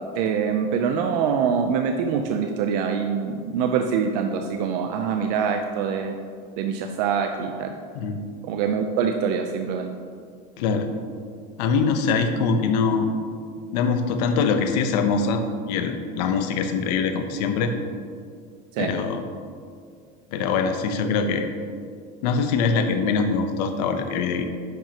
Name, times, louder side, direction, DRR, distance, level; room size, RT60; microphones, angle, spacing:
voice 1, 0.1-6.2 6.6-7.7 8.4-9.9 18.7-18.9, right 6 dB, 80° right, 4 dB, 0.6 m, -24 dB
voice 2, 10.6-10.9 11.6-13.1 13.7-15.4 15.7-17.7 18.8-19.2 20.3-21.5 22.2-24.4, left 5 dB, 85° left, 7 dB, 0.8 m, -23 dB
10.5 x 5.9 x 2.9 m, 2.2 s
supercardioid pair, 130°, 21 cm